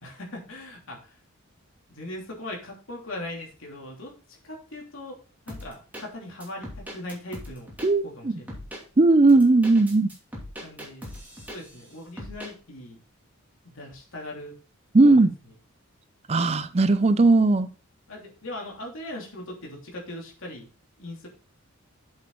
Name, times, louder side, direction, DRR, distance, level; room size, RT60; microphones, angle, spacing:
voice 1, 0.0-1.2 1.9-5.2 5.5-7.7 8.0-8.7 10.6-11.1 11.5-13.0 13.6-14.5 15.0-15.3 18.1-20.7 21.0-21.3, left 1 dB, 65° left, -1 dB, 3.0 m, -39 dB
sound 1, 5.5-6.0 6.4-7.9 8.5-8.8 9.3-11.9 12.2-12.5, equal, 10° right, 2.6 m, -39 dB
voice 2, 7.8-8.3 9.0-10.1 14.9-15.3 16.3-17.7, right 2 dB, 30° right, 11 dB, 0.5 m, -18 dB
7.8 x 7.2 x 3.9 m, 0.35 s
head